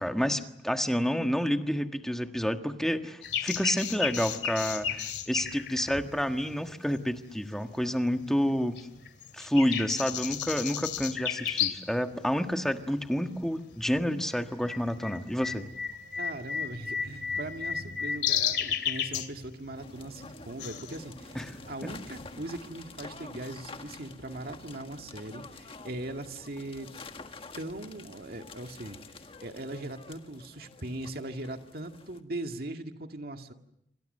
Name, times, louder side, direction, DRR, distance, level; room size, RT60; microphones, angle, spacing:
voice 1, 0.0-8.8 9.3-15.7 21.3-21.4 21.8-21.9, equal, 5° left, 6 dB, 1.5 m, -29 dB
sound 1, 3.2-7.2 7.7-8.5 8.8-12.0 12.3-12.4 13.1-13.4 13.7-22.7, left 8 dB, 70° left, 2.5 m, -33 dB
Organ, 16.0-22.5, left 2 dB, 80° right, 6.2 m, -57 dB
voice 2, 16.2-21.4 21.6-26.9 27.5-33.5, right 1 dB, 60° right, 5 dB, 2.0 m, -40 dB
sound 2, 19.8-32.2, left 3 dB, 30° left, 1.7 m, -48 dB
28.0 x 25.0 x 6.7 m, 0.77 s
head